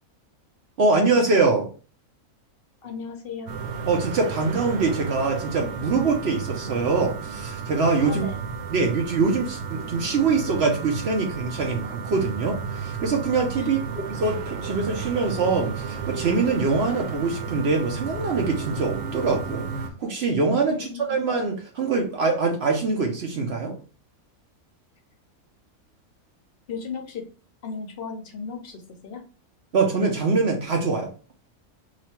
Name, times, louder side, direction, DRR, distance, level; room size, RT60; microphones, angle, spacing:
voice 1, 0.8-1.7 3.9-8.2 8.7-19.7 20.0-23.7 29.7-31.1, right 4 dB, 55° right, 0.8 m, -24 dB
voice 2, 2.8-3.6 8.0-8.4 13.6-13.7 20.7-21.2 26.7-27.2 27.6-29.2, left 5 dB, 55° left, 0.7 m, -35 dB
sound 1, 3.5-19.9, right 5 dB, 85° right, 1.1 m, -33 dB
3.0 x 2.4 x 4.2 m
omnidirectional pair, 1.6 m